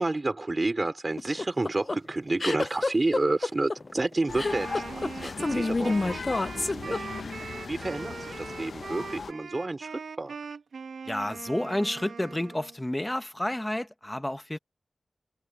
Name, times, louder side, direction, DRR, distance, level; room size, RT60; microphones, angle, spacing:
voice 1, 0.0-7.3 7.7-10.4, right 2 dB, 35° right, 3.9 m, -30 dB
sound 1, 1.2-7.4, left 3 dB, 35° left, 0.4 m, -28 dB
sound 2, 4.3-9.3, left 4 dB, 75° left, 1.1 m, -38 dB
Wind instrument woodwind instrument, 4.4-12.8, right 5 dB, 90° right, 1.4 m, -41 dB
voice 2, 11.1-14.6, left 1 dB, 15° left, 1.4 m, -30 dB
wide cardioid pair, 85°, 0 cm